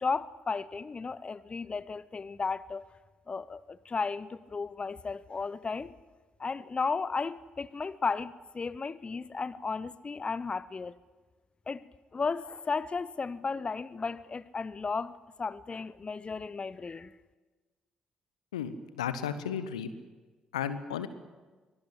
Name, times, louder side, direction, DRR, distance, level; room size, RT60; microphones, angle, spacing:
voice 1, 0.0-2.9 3.3-5.9 6.4-10.9 11.7-11.9 12.1-17.1, left 4 dB, 30° left, 0.7 m, -34 dB
voice 2, 18.5-19.9 20.5-21.1, left 8 dB, 80° left, 1.0 m, -34 dB
23.5 x 17.5 x 8.1 m
figure-of-eight pair, 40°, 3 cm